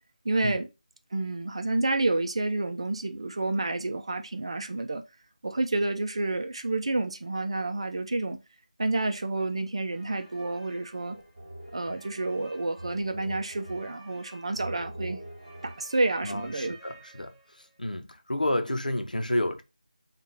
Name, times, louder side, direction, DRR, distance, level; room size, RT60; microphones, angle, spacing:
voice 1, 0.2-0.7 1.1-5.0 5.4-8.4 8.8-11.2 11.7-15.2 15.6-16.8, right 2 dB, 45° right, 0.5 m, -29 dB
sound 1, 9.8-17.7, right 1 dB, 15° right, 1.9 m, -45 dB
voice 2, 16.2-17.3 17.8-19.6, left 1 dB, 85° left, 0.8 m, -30 dB
5.3 x 2.5 x 3.5 m
figure-of-eight pair, 165°, 4 cm